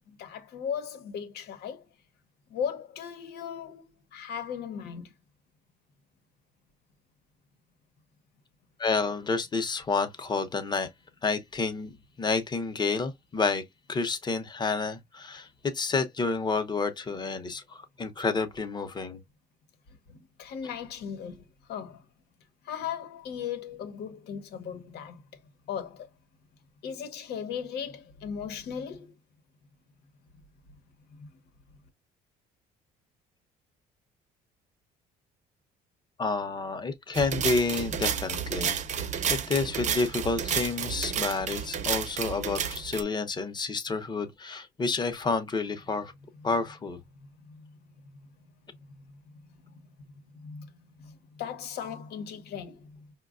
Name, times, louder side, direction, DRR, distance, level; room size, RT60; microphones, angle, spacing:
voice 1, 0.1-1.8 2.5-5.1 20.1-22.0 22.6-25.2 25.7-26.1 26.8-29.1 31.2-31.3 46.4-46.5 47.5-47.7 49.6-49.7 50.3-50.7 51.0-53.0, left 7 dB, 75° left, 0.9 m, -37 dB
voice 2, 8.8-10.9 11.2-13.6 13.9-15.5 15.7-19.2 36.2-46.1 46.4-47.0, left 4 dB, 25° left, 0.8 m, -29 dB
sound 1, 37.1-43.0, right 7 dB, 45° right, 0.6 m, -31 dB
5.1 x 2.2 x 2.4 m
cardioid pair, 110°, 17 cm